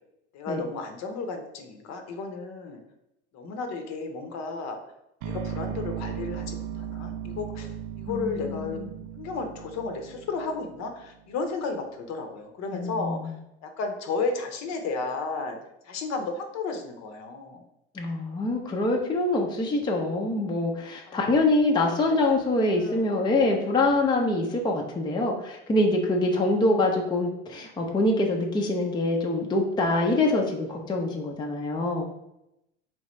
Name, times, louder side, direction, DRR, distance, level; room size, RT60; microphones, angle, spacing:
voice 1, 0.3-2.8 3.3-4.8 5.2-8.8 9.1-13.2 13.6-15.6 15.8-17.6 21.1-21.2 22.0-22.4 22.8-23.1, left 4 dB, 45° left, 5 dB, 0.7 m, -33 dB
sound 1, 5.2-11.2, right 9 dB, 60° right, 0.5 m, -37 dB
voice 2, 8.1-8.9 12.7-13.3 17.9-32.0, left 2 dB, 10° left, 0 dB, 0.5 m, -25 dB
3.4 x 3.1 x 3.1 m, 0.85 s
hypercardioid pair, 85°, 36 cm